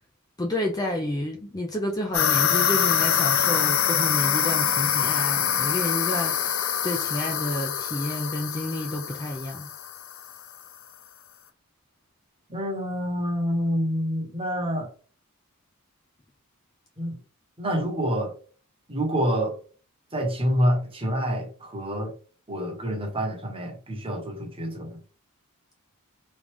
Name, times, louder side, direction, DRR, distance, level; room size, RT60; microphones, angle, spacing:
voice 1, 0.4-6.5 6.8-9.7, left 1 dB, 15° left, 0.5 m, -30 dB
sound 1, 2.1-10.3, left 8 dB, 60° left, 0.6 m, -25 dB
voice 2, 12.5-14.9 17.0-17.2 17.6-18.3 18.9-19.5 20.1-22.1 22.5-25.0, equal, 25° right, 1.1 m, -27 dB
3.8 x 3.3 x 3.4 m
head